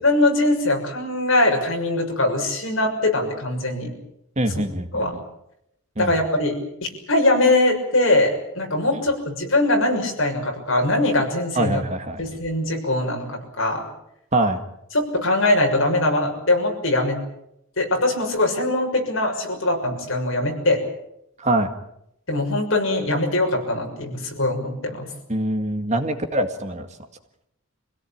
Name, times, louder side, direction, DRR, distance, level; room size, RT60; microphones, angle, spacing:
voice 1, 0.0-3.9 4.9-5.1 6.0-11.8 12.2-13.8 14.9-17.2 17.8-20.8 22.3-25.0, left 2 dB, 65° left, 2 dB, 6.5 m, -22 dB
voice 2, 4.4-5.2 6.0-6.1 11.6-12.2 14.3-14.6 21.4-21.7 25.3-26.9, right 1 dB, 35° right, 7 dB, 2.0 m, -23 dB
26.5 x 17.0 x 8.8 m, 0.79 s
head